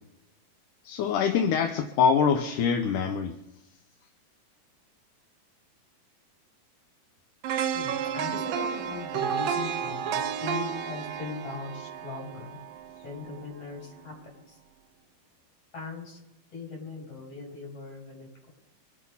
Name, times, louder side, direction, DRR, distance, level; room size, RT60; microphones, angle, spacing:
voice 1, 0.8-3.4, left 6 dB, 70° left, 5 dB, 2.3 m, -24 dB
sound 1, 7.4-13.5 13.8-14.0, right 8 dB, 75° right, 2.7 m, -32 dB
voice 2, 7.7-12.6 13.0-14.6 15.7-16.2 16.5-18.5, left 4 dB, 40° left, -3 dB, 7.4 m, -39 dB
25.0 x 8.4 x 5.6 m, 0.96 s
omnidirectional pair, 4.1 m